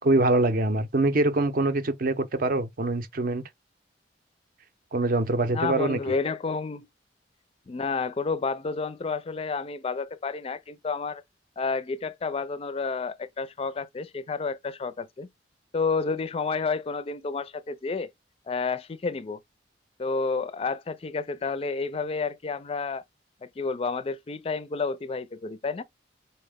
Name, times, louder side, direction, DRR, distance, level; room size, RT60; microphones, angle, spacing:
voice 1, 0.0-3.5 4.9-6.0, right 2 dB, 55° right, 0.6 m, -24 dB
voice 2, 5.5-6.9 7.7-11.2 11.6-15.3 15.7-18.1 18.5-19.4 20.0-23.0 23.4-25.8, left 4 dB, 35° left, 0.4 m, -30 dB
4.2 x 2.1 x 3.4 m
head